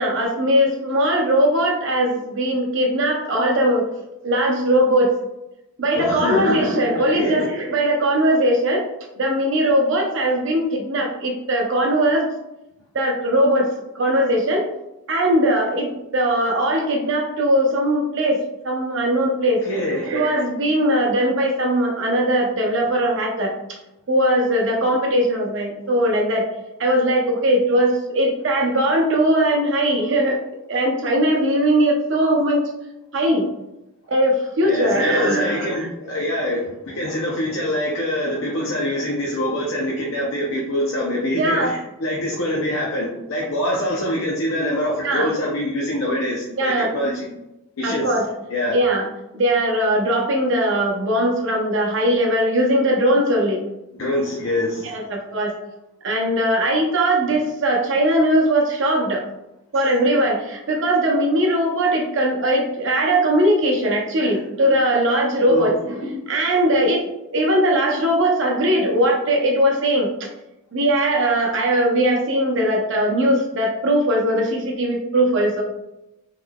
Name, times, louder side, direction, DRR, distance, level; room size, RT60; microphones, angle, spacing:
voice 1, 0.0-3.8 4.2-5.1 5.8-8.9 9.2-12.3 12.9-13.7 13.9-14.7 15.1-19.6 20.0-23.5 24.1-26.5 26.8-30.4 30.7-32.6 33.1-33.5 34.1-35.7 41.4-41.7 45.0-45.3 46.6-46.9 47.8-48.3 48.7-49.1 49.3-53.6 54.8-55.5 56.0-59.2 59.7-67.0 67.3-70.3 70.7-75.6, right 1 dB, 55° right, 1 dB, 0.6 m, -20 dB
voice 2, 5.9-6.6 7.0-7.5 19.6-20.1 34.6-47.3 47.8-48.2 48.5-48.8 53.9-55.0 64.3-64.4 65.5-65.7, left 1 dB, 65° left, -2 dB, 0.5 m, -24 dB
3.6 x 3.1 x 2.2 m, 0.91 s
head